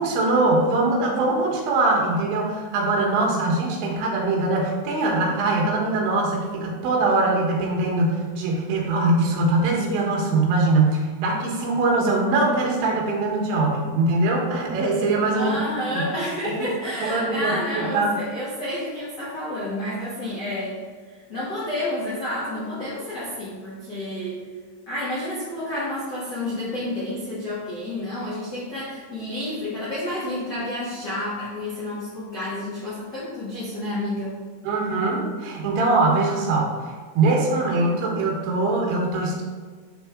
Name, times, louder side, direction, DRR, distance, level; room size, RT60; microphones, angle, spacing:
voice 1, 0.0-15.6 15.9-16.0 16.5-16.6 17.0-18.1 34.6-39.4, right 2 dB, 85° right, -2 dB, 3.6 m, -22 dB
voice 2, 15.3-20.8 21.1-24.4 24.9-34.4, left 1 dB, 70° left, -10 dB, 1.0 m, -30 dB
10.5 x 3.6 x 3.6 m, 1.5 s
omnidirectional pair, 5.2 m